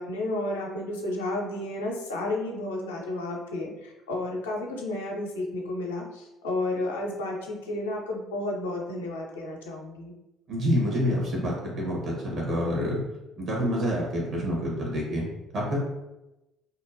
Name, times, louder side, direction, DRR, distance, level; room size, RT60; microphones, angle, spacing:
voice 1, 0.0-10.1, left 2 dB, 85° left, -1 dB, 0.4 m, -32 dB
voice 2, 10.5-13.0 13.4-15.3 15.5-15.8, equal, 55° right, -3 dB, 1.1 m, -27 dB
2.7 x 2.1 x 2.5 m, 0.97 s
hypercardioid pair, 55°, 0 cm